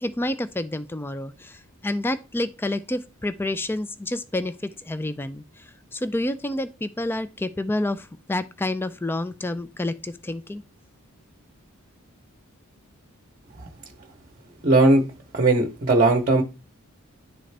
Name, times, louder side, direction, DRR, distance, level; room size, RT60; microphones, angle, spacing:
voice 1, 0.0-5.6 5.9-10.6, left 1 dB, 10° left, 0.3 m, -29 dB
voice 2, 14.6-15.0 15.3-16.4, right 2 dB, 35° right, 0.9 m, -18 dB
10.0 x 3.8 x 3.3 m
head